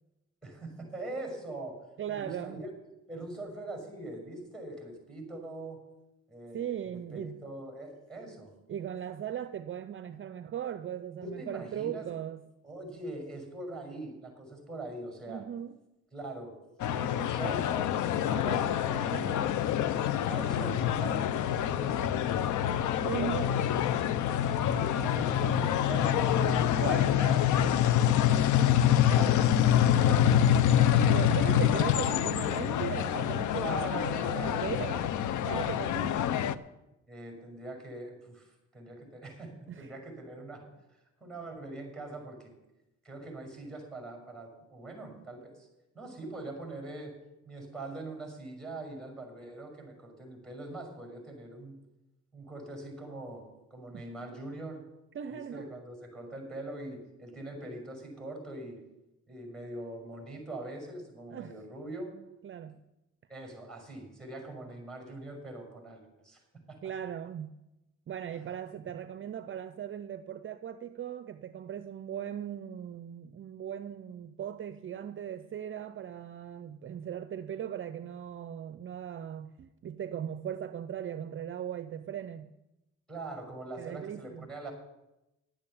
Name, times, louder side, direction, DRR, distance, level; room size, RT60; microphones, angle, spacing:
voice 1, 0.4-1.8 2.1-2.7 3.1-5.8 6.3-8.5 11.2-12.1 12.6-15.4 16.1-16.6 16.9-22.4 23.0-23.5 24.6-27.6 28.8-30.8 33.6-35.0 35.4-36.3 37.1-42.5 43.0-45.7 45.9-47.1 47.4-51.8 52.3-53.4 53.7-54.8 55.3-58.8 59.3-62.1 63.3-66.9 83.1-84.7, right 2 dB, ahead, 6.0 m, -43 dB
voice 2, 2.0-2.6 6.5-7.4 8.7-12.4 15.3-15.8 19.1-19.4 22.7-23.5 24.1-25.0 26.8-27.2 28.9-29.1 31.1-36.2 39.7-39.9 53.9-54.0 55.1-55.7 61.3-61.5 62.4-62.8 66.8-67.5 68.1-82.5 83.8-84.5, right 9 dB, 45° right, 0.6 m, -38 dB
sound 1, 16.8-36.5, left 10 dB, 75° left, 0.6 m, -26 dB
11.5 x 8.9 x 7.1 m
cardioid pair, 90°, 30 cm